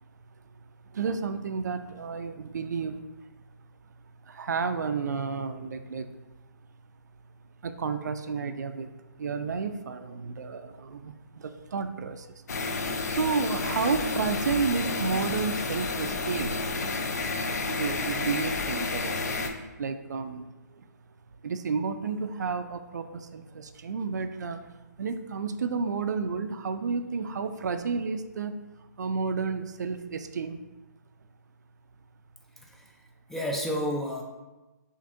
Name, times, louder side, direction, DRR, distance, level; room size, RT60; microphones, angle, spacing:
voice 1, 0.9-3.0 4.3-6.1 7.6-8.9 9.2-12.3 13.1-16.6 17.7-19.4 19.8-20.8 21.4-24.6 25.0-28.6 29.0-30.6, right 5 dB, 70° right, 9 dB, 0.4 m, -31 dB
sound 1, 12.5-19.5, left 3 dB, 60° left, 0.6 m, -30 dB
voice 2, 32.6-32.9 33.3-34.2, equal, 5° left, -1 dB, 0.3 m, -31 dB
6.4 x 2.6 x 2.5 m, 1.1 s
hypercardioid pair, 140°, 10 cm